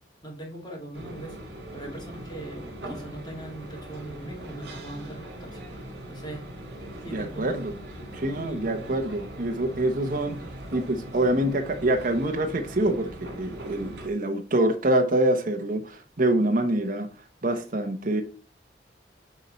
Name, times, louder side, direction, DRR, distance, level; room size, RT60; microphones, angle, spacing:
voice 1, 0.2-1.3 1.7-5.6 6.1-6.5 7.0-7.6 8.4-8.7, right 1 dB, 25° left, 2.4 m, -40 dB
sound 1, 0.9-14.1, right 1 dB, 70° right, 3.0 m, -40 dB
voice 2, 7.1-7.7 8.1-17.1 17.4-18.2, right 1 dB, 50° right, 1.0 m, -25 dB
8.9 x 4.4 x 4.0 m
head